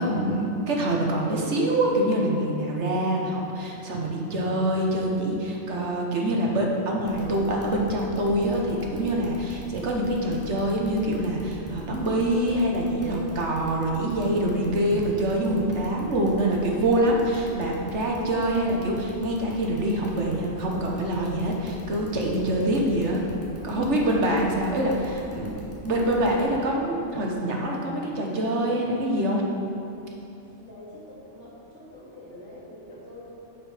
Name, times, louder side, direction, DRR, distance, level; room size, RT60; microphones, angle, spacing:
voice 1, 0.0-23.2 23.6-29.5, right 1 dB, 75° right, -1 dB, 1.5 m, -25 dB
sound 1, 7.1-26.4, left 1 dB, 10° left, 1.5 m, -44 dB
voice 2, 30.5-33.4, left 1 dB, 75° left, -8 dB, 2.7 m, -45 dB
10.5 x 5.5 x 5.0 m, 2.8 s
omnidirectional pair, 1.2 m